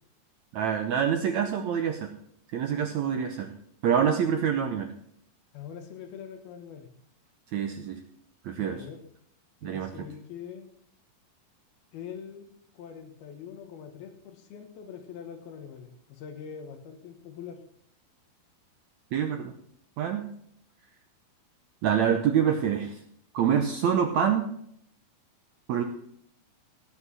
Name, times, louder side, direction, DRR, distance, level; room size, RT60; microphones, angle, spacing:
voice 1, 0.5-2.1 2.5-3.5 3.8-4.9 7.5-8.0 8.4-8.8 9.6-10.1 19.1-19.5 20.0-20.3 21.8-23.0 23.3-24.5 25.7-25.8, right 8 dB, 75° right, 6 dB, 1.7 m, -26 dB
voice 2, 5.5-6.9 8.5-9.0 9.6-10.7 11.9-12.5 12.7-17.6, left 7 dB, 90° left, 4 dB, 3.2 m, -43 dB
17.0 x 5.7 x 6.3 m, 0.67 s
omnidirectional pair, 4.3 m